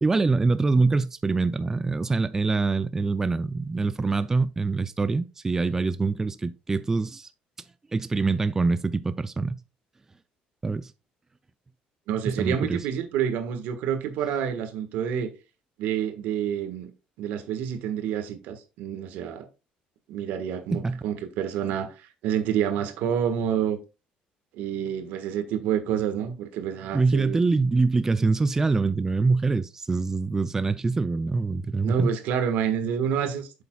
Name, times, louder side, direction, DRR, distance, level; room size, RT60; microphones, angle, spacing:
voice 1, 0.0-7.3 7.9-9.6 10.6-10.9 12.3-12.8 20.7-21.0 26.9-32.1, right 3 dB, 15° right, 0.4 m, -24 dB
voice 2, 12.1-15.3 15.8-16.9 17.2-19.5 20.1-23.8 24.5-27.4 31.8-33.6, right 8 dB, 85° right, 1.4 m, -28 dB
8.4 x 7.1 x 2.3 m
cardioid pair, 125°, 3 cm